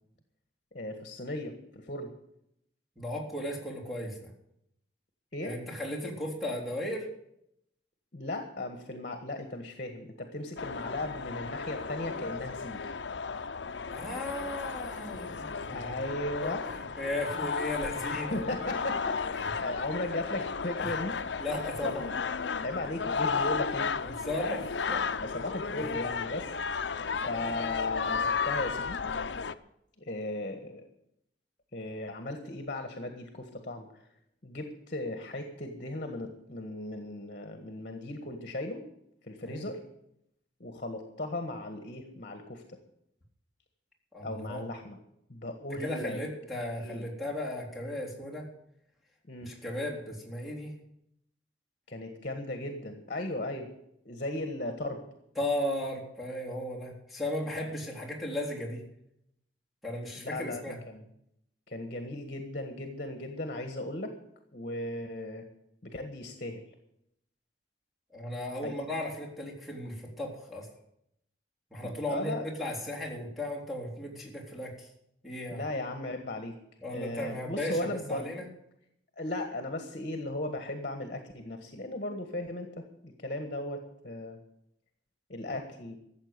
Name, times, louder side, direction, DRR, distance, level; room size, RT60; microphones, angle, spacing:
voice 1, 0.7-2.1 5.3-5.6 8.1-12.9 15.7-16.7 18.1-21.1 22.6-23.9 25.2-26.5 27.2-29.0 30.0-30.9 31.7-34.0 34.4-38.8 39.2-39.8 40.6-42.8 44.2-45.0 45.3-46.2 46.8-47.1 49.3-49.5 51.9-53.7 54.0-55.0 60.2-61.0 61.7-64.1 64.5-65.4 65.8-66.6 68.6-68.8 72.1-72.5 75.5-76.6 76.9-78.2 79.2-84.4 85.3-86.0, left 1 dB, 50° left, 6 dB, 1.6 m, -37 dB
voice 2, 3.0-4.3 5.4-7.1 13.9-15.9 16.4-18.4 19.3-19.4 21.4-22.1 22.5-22.6 24.0-25.1 25.8-25.9 39.5-39.6 44.1-44.6 45.8-48.5 49.4-50.8 55.4-58.8 59.8-60.8 68.1-70.7 71.7-74.9 75.2-75.6 76.8-78.5, left 1 dB, ahead, -2 dB, 3.8 m, -36 dB
sound 1, 10.6-29.5, left 5 dB, 75° left, 0.7 m, -34 dB
14.5 x 7.6 x 9.7 m, 0.76 s
head